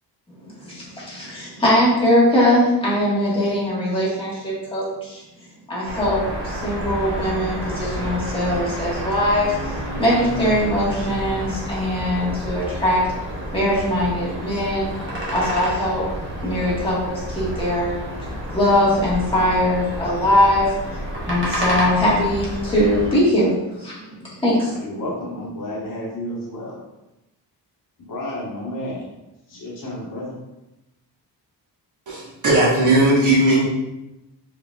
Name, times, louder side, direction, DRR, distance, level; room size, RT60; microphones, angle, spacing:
voice 1, 0.6-5.2 5.7-13.0 13.5-14.9 15.3-16.1 16.4-20.7 21.3-24.0 24.4-24.7, left 1 dB, 15° left, -8 dB, 1.5 m, -21 dB
sound 1, 5.8-23.1, equal, 30° right, 1.1 m, -29 dB
voice 2, 24.7-26.8 28.1-29.1 29.5-30.3, left 1 dB, 50° left, -4 dB, 1.3 m, -31 dB
voice 3, 32.1-33.7, right 1 dB, 45° right, -5 dB, 1.3 m, -17 dB
4.9 x 4.0 x 2.3 m, 0.94 s
wide cardioid pair, 175°, 41 cm